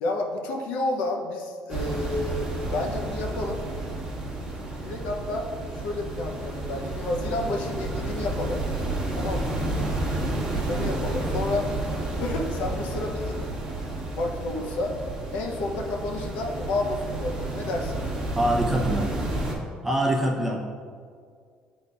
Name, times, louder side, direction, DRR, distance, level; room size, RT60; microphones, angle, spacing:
voice 1, 0.0-3.6 4.8-8.6 9.1-9.6 10.7-11.7 12.2-13.4 14.1-15.0 15.3-18.0, left 2 dB, 80° left, 1 dB, 0.7 m, -30 dB
sound 1, 1.7-19.5, right 2 dB, 25° right, 1.4 m, -31 dB
voice 2, 18.3-19.1 19.8-20.6, right 1 dB, 10° right, -2 dB, 0.8 m, -24 dB
9.7 x 4.1 x 2.4 m, 2.1 s
cardioid pair, 155°, 3 cm